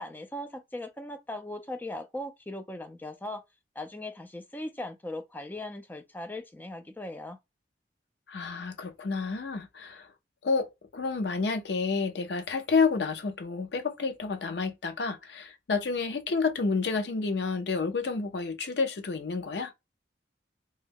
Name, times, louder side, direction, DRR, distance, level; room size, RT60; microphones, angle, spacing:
voice 1, 0.0-3.4 3.8-7.4, left 1 dB, 10° left, 0.3 m, -39 dB
voice 2, 8.3-10.1 10.4-19.7, left 4 dB, 75° left, 0.5 m, -30 dB
2.2 x 2.1 x 3.4 m
head